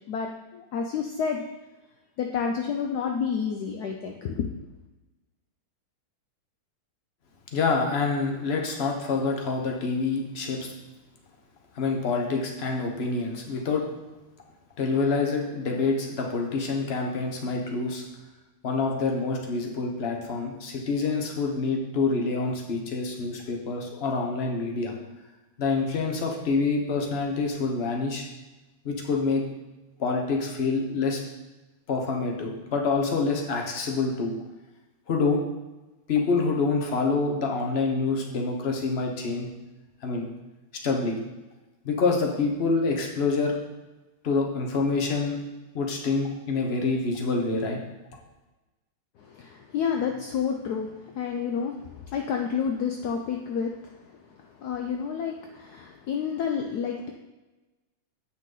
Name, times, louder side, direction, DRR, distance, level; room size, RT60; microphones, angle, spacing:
voice 1, 0.1-1.4 2.2-4.5 49.2-57.1, left 6 dB, 75° left, 2 dB, 0.9 m, -30 dB
voice 2, 7.5-10.7 11.7-13.8 14.8-18.0 18.6-24.9 25.6-28.3 28.8-29.4 30.0-31.2 31.9-34.3 35.1-35.4 36.1-39.5 40.0-40.3 40.8-41.2 41.8-43.5 44.2-45.4 45.7-47.8, left 4 dB, 40° left, 1 dB, 1.0 m, -26 dB
8.3 x 5.9 x 3.9 m, 1.1 s
omnidirectional pair, 2.3 m